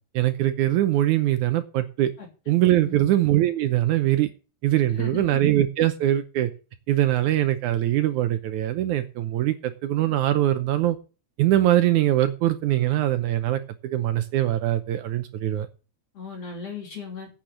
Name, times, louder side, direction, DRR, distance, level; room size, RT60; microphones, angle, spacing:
voice 1, 0.1-2.1 2.5-4.3 4.6-6.5 6.9-11.0 11.4-15.7, right 13 dB, 75° right, 10 dB, 1.9 m, -22 dB
voice 2, 2.8-3.1 4.9-5.4 16.1-17.3, left 5 dB, 45° left, 1 dB, 4.0 m, -37 dB
9.0 x 7.6 x 8.2 m, 0.35 s
omnidirectional pair, 4.2 m